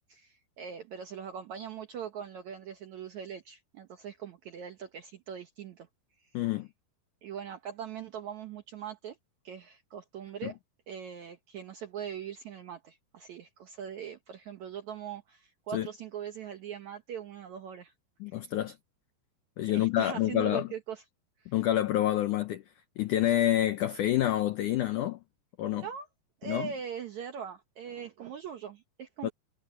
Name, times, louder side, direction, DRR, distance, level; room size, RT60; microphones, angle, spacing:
voice 1, 0.0-5.9 7.2-9.2 9.4-10.6 10.9-17.9 19.7-21.0 21.4-21.5 25.7-26.1 26.4-29.3, right 8 dB, 70° right, 1.7 m, -41 dB
voice 2, 6.3-6.7 10.4-10.5 15.7-15.9 18.2-18.8 19.6-20.7 21.5-22.6 23.0-25.2 25.6-25.9 26.5-26.7 29.2-29.3, left 13 dB, 85° left, 1.7 m, -28 dB
omnidirectional pair, 4.7 m